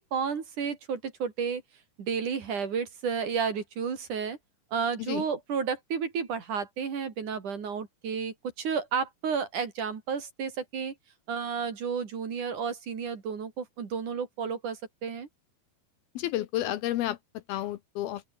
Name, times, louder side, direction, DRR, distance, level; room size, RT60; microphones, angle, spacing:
voice 1, 0.0-1.6 2.0-4.4 4.7-10.9 11.3-15.3, right 6 dB, 50° right, 4.2 m, -32 dB
voice 2, 16.2-17.2 17.5-18.2, left 14 dB, 75° left, 2.6 m, -31 dB
open air
omnidirectional pair, 4.9 m